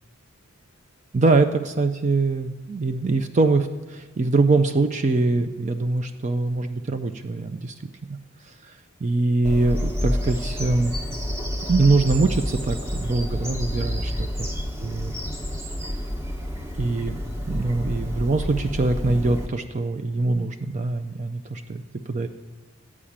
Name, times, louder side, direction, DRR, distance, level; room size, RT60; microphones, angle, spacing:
voice 1, 1.1-7.7 8.4-10.9 11.7-14.1 14.8-15.1 16.7-17.2 17.5-22.3, right 3 dB, 35° right, 7 dB, 0.4 m, -23 dB
Bird vocalization bird call bird song, 9.4-19.5, equal, 10° right, 1.0 m, -29 dB
13.0 x 4.9 x 8.7 m, 1.2 s
head